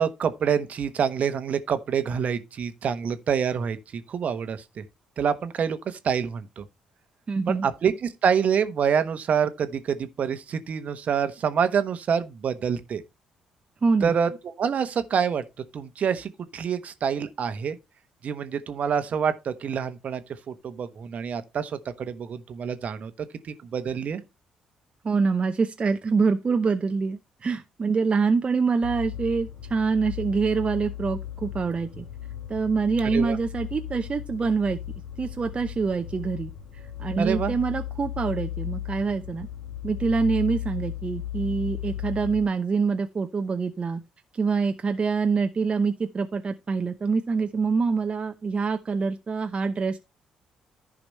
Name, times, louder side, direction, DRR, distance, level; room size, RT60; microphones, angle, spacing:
voice 1, 0.0-4.8 5.2-6.6 7.5-13.0 14.0-15.4 15.7-17.8 18.2-23.1 23.5-24.2 33.1-33.4 37.2-37.5, right 7 dB, 55° right, 1.1 m, -27 dB
voice 2, 7.3-7.7 13.8-14.1 25.0-32.0 32.5-34.8 35.2-36.5 37.0-39.5 39.8-44.0 44.4-50.0, right 4 dB, 35° right, 0.8 m, -25 dB
sound 1, 28.8-42.4, left 11 dB, 60° left, 3.8 m, -36 dB
14.5 x 5.0 x 3.1 m
hypercardioid pair, 45°, 3 cm